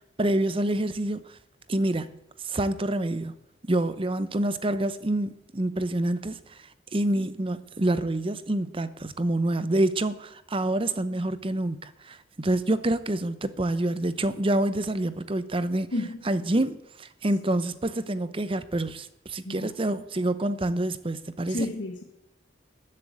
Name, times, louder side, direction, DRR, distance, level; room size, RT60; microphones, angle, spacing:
voice 1, 0.2-1.2 1.7-2.1 2.4-3.3 3.7-6.6 6.9-15.9 16.3-21.7, right 1 dB, 30° right, 0.7 m, -27 dB
voice 2, 21.5-22.0, left 1 dB, 70° left, 1.4 m, -31 dB
13.5 x 7.7 x 8.8 m
head